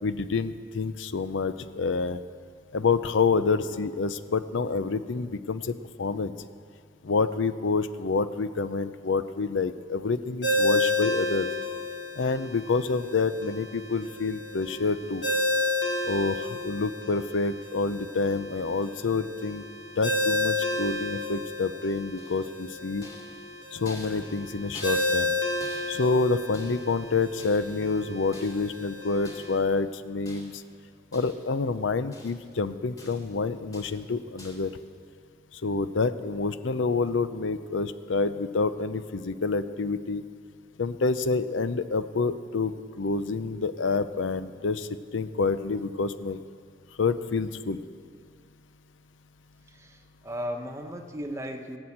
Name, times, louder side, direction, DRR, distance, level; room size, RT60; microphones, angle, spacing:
voice 1, 0.0-2.2 2.7-6.3 7.0-11.5 12.2-15.3 16.0-19.6 20.0-23.0 23.7-25.3 25.9-30.5 31.1-34.7 35.5-40.2 40.8-46.4 47.0-47.8, left 4 dB, 85° left, 13 dB, 0.6 m, -28 dB
Ringtone, 10.4-29.6, left 2 dB, 70° left, 2.5 m, -31 dB
sound 1, 22.2-22.6 23.0-25.3 25.6-27.0 27.4-27.9 28.3-28.8 29.2-29.7 30.3-30.7 31.1-31.6 31.9-32.6 33.0-33.4 33.7-34.1 34.4-34.7, left 1 dB, 20° left, 2.4 m, -48 dB
voice 2, 49.7-51.8, equal, 15° right, 4 dB, 1.1 m, -36 dB
18.5 x 6.2 x 8.5 m, 2.3 s
head